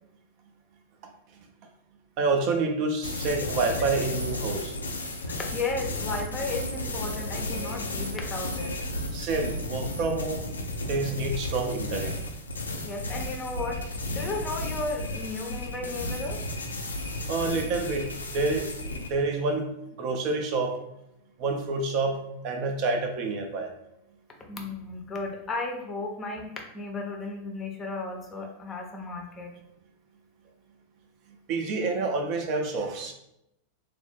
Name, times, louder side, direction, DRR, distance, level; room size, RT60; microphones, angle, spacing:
voice 1, 2.2-4.7 9.1-10.5 10.8-12.1 17.3-18.7 19.1-19.7 20.0-20.8 21.4-23.7 31.5-33.1, right 3 dB, 40° right, 4 dB, 0.4 m, -28 dB
sound 1, 3.0-19.1, left 1 dB, 75° left, 0.4 m, -33 dB
voice 2, 5.3-8.7 12.8-16.4 24.5-29.6, left 3 dB, 20° left, 1 dB, 0.6 m, -34 dB
3.3 x 2.0 x 3.2 m, 0.82 s
figure-of-eight pair, 90°, 0 cm